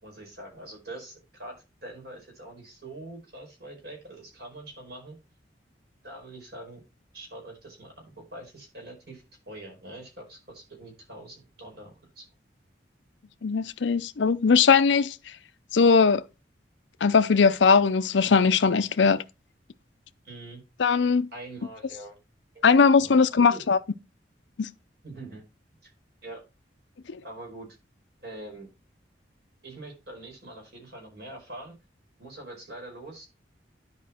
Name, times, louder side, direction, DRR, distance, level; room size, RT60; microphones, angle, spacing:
voice 1, 0.0-1.5 1.8-5.2 6.0-6.8 7.1-12.3 20.2-20.6 21.3-22.2 22.5-23.6 25.0-25.4 25.8-25.9 26.2-26.4 27.2-27.7 28.2-28.7 29.6-31.7 32.2-33.3, right 2 dB, 60° right, 5.0 m, -44 dB
voice 2, 13.4-15.1 15.7-16.2 17.0-19.2 20.8-21.3 22.6-23.8 24.6-24.7, left 5 dB, 85° left, 0.6 m, -20 dB
10.5 x 5.0 x 4.3 m
head